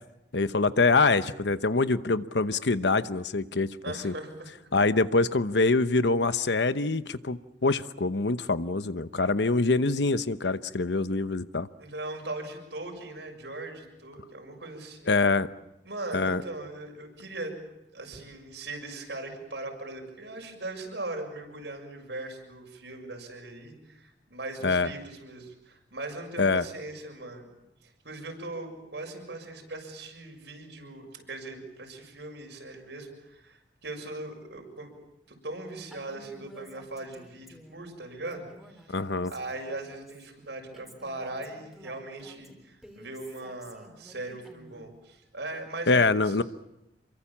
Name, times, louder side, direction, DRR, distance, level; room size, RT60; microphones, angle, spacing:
voice 1, 0.3-3.7 4.0-4.1 4.7-11.7 15.1-15.5 16.1-16.4 24.6-24.9 26.4-26.6 38.9-39.3 45.9-46.4, left 3 dB, 70° left, 13 dB, 1.0 m, -25 dB
voice 2, 3.8-4.5 11.8-15.1 15.8-17.5 17.9-27.5 27.8-34.9 35.3-38.5 38.9-39.0 39.3-46.4, right 2 dB, 75° right, 3 dB, 6.7 m, -39 dB
Female speech woman speaking, 35.9-37.9 38.3-40.3 40.7-44.9, equal, ahead, 3.7 m, -52 dB
28.0 x 24.0 x 7.3 m, 0.91 s
head